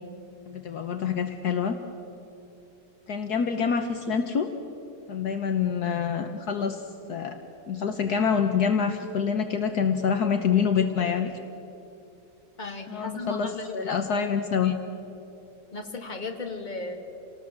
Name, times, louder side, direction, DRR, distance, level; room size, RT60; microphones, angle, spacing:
voice 1, 0.5-1.8 3.1-4.5 5.1-7.4 7.7-11.3 12.9-14.7, left 6 dB, 65° left, 6 dB, 1.5 m, -26 dB
voice 2, 12.6-14.0 14.6-14.7 15.7-17.0, left 3 dB, 25° left, 3 dB, 2.1 m, -36 dB
28.0 x 19.5 x 7.4 m, 2.8 s
omnidirectional pair, 1.9 m